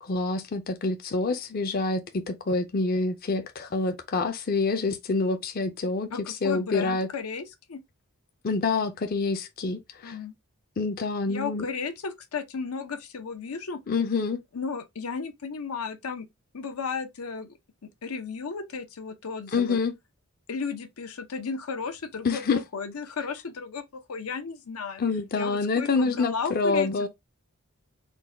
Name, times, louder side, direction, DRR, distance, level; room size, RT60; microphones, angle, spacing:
voice 1, 0.0-7.1 8.4-10.2 10.8-11.6 13.9-14.4 19.5-19.9 22.2-22.6 25.0-27.1, left 4 dB, 45° left, 0.4 m, -27 dB
voice 2, 6.1-7.8 10.0-10.3 11.3-13.8 14.5-16.3 16.5-17.6 18.0-19.8 20.5-25.0 25.4-26.9, left 5 dB, 90° left, 0.7 m, -34 dB
3.9 x 2.2 x 3.3 m
head